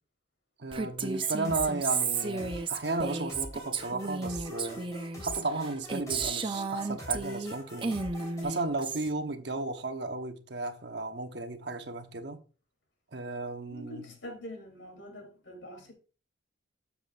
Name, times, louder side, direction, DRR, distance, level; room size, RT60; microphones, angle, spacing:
voice 1, 0.6-4.8 5.2-8.0 8.4-12.4 13.1-14.0, right 2 dB, 60° right, 1.0 m, -34 dB
Female speech woman speaking, 0.7-7.6 7.8-9.1, right 4 dB, 25° right, 0.7 m, -33 dB
sound 1, 1.1-8.4, equal, 15° left, 3.9 m, -45 dB
voice 2, 13.7-15.9, left 1 dB, 85° left, 3.3 m, -44 dB
12.5 x 7.1 x 2.5 m
head